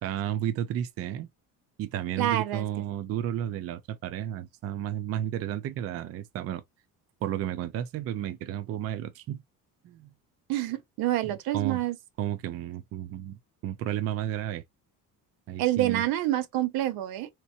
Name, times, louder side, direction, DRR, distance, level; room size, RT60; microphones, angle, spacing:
voice 1, 0.0-1.3 1.8-6.6 7.2-9.4 9.8-10.1 11.2-11.8 12.2-13.4 13.6-14.6 15.5-16.0, right 11 dB, 45° right, 0.4 m, -32 dB
voice 2, 2.2-2.6 10.5-12.0 15.6-17.3, right 14 dB, 85° right, 0.7 m, -27 dB
3.3 x 2.9 x 2.7 m
cardioid pair, 170°, 36 cm